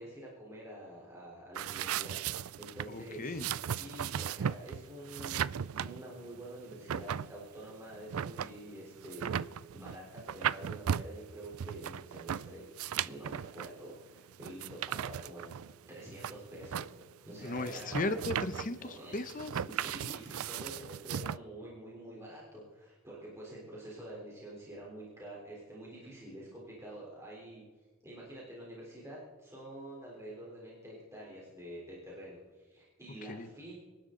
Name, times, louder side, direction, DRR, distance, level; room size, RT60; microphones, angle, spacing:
voice 1, 0.0-2.2 2.6-3.4 3.6-12.6 13.0-15.5 15.9-16.9 17.2-18.3 18.8-19.1 19.7-33.8, right 1 dB, 15° right, -5 dB, 3.6 m, -47 dB
sound 1, 1.6-21.4, right 9 dB, 70° right, 0.4 m, -37 dB
voice 2, 2.9-3.5 17.4-19.6 33.3-33.5, left 2 dB, 40° left, 10 dB, 0.9 m, -36 dB
26.0 x 11.5 x 3.8 m, 1.3 s
head